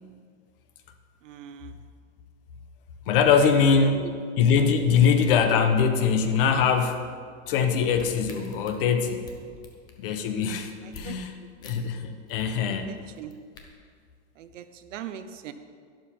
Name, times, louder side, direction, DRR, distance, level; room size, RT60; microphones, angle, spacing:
voice 1, 1.2-1.8 3.2-4.1 10.8-11.2 12.6-13.3 14.4-15.5, right 10 dB, 85° right, 10 dB, 1.0 m, -40 dB
voice 2, 3.1-4.0 4.4-7.0 7.5-9.2 10.0-12.9, left 6 dB, 50° left, 7 dB, 1.1 m, -22 dB
sound 1, 7.7-11.1 11.6-11.7 12.0-12.5 13.1-13.6, left 5 dB, 10° left, 0.5 m, -47 dB
12.0 x 11.5 x 4.4 m, 2.1 s
supercardioid pair, 180°, 36 cm